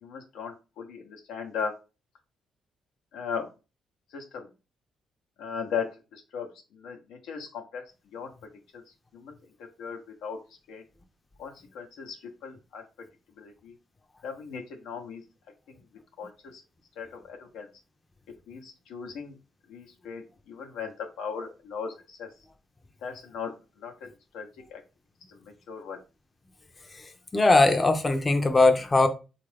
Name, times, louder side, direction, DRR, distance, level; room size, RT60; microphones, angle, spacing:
voice 1, 0.0-1.7 3.1-3.5 4.1-4.5 5.4-8.8 9.1-9.3 9.6-10.4 10.7-10.8 11.4-12.8 13.4-13.7 14.2-15.2 15.7-15.8 16.2-16.6 17.0-17.7 18.5-19.4 19.7-22.3 23.0-24.1 24.3-24.8 25.3-26.0, left 6 dB, 90° left, 3 dB, 0.7 m, -38 dB
voice 2, 27.3-29.1, left 2 dB, 25° left, 6 dB, 0.5 m, -20 dB
3.5 x 2.4 x 3.3 m, 0.30 s
cardioid pair, 90°, 0 cm